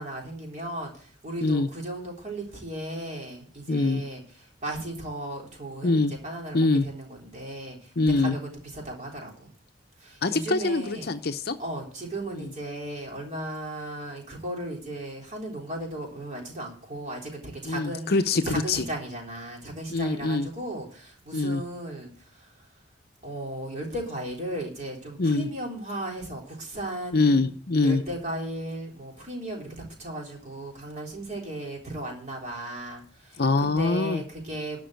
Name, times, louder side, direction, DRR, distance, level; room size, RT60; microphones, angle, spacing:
voice 1, 0.0-9.5 10.0-11.1 11.6-18.1 18.4-22.5 23.2-27.5 27.8-34.8, right 1 dB, 35° right, -1 dB, 3.7 m, -36 dB
voice 2, 3.7-4.0 5.8-6.1 6.5-6.9 8.0-8.4 10.2-11.6 12.3-12.5 17.6-18.8 19.9-20.5 21.3-21.6 25.2-25.5 27.1-28.0 33.4-34.2, left 3 dB, 50° left, 8 dB, 0.7 m, -24 dB
12.0 x 5.3 x 9.0 m, 0.43 s
head